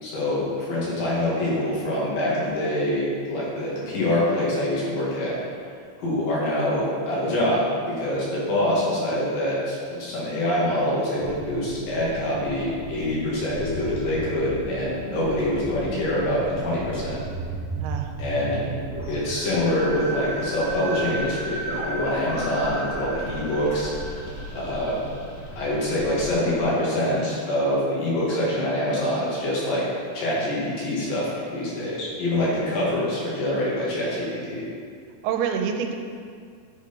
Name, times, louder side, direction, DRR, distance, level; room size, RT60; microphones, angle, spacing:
voice 1, 0.0-5.4 6.0-17.2 18.2-18.6 19.1-23.9 24.5-25.0 25.6-29.9 30.1-34.7, left 1 dB, 65° left, -7 dB, 3.5 m, -25 dB
sound 1, 11.2-26.6, right 2 dB, 40° left, 0.6 m, -34 dB
voice 2, 17.8-18.1 35.2-36.0, right 7 dB, 85° right, 5 dB, 2.6 m, -26 dB
9.4 x 6.0 x 4.3 m, 2.2 s
omnidirectional pair, 4.4 m